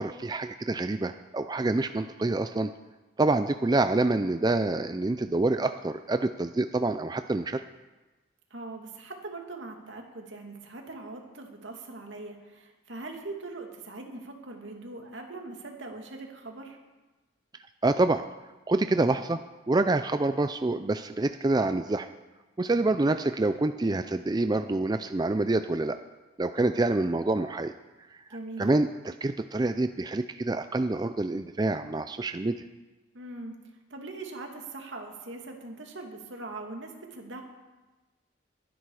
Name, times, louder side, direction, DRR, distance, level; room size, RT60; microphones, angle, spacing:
voice 1, 0.0-2.7 3.2-7.6 17.8-18.3 18.7-22.1 22.6-26.0 26.4-27.7 28.6-32.6, right 2 dB, 20° right, 9 dB, 0.4 m, -27 dB
voice 2, 8.5-16.8 28.3-28.6 33.1-33.5 33.9-37.4, right 2 dB, 75° right, 2 dB, 2.5 m, -41 dB
22.0 x 10.0 x 4.8 m, 1.2 s
head